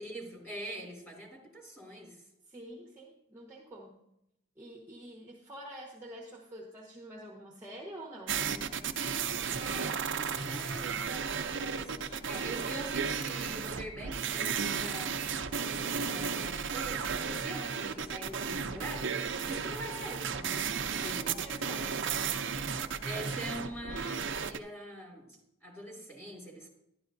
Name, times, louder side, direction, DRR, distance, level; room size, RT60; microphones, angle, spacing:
voice 1, 0.0-2.2 9.5-15.2 16.0-20.7 21.0-21.6 23.0-26.7, right 1 dB, 10° left, -2 dB, 2.8 m, -44 dB
voice 2, 2.5-3.9 4.6-8.4 21.0-22.3, right 1 dB, 10° right, -2 dB, 1.0 m, -47 dB
sound 1, 8.3-24.6, right 6 dB, 55° right, 0.6 m, -34 dB
11.5 x 11.5 x 2.6 m, 0.82 s
head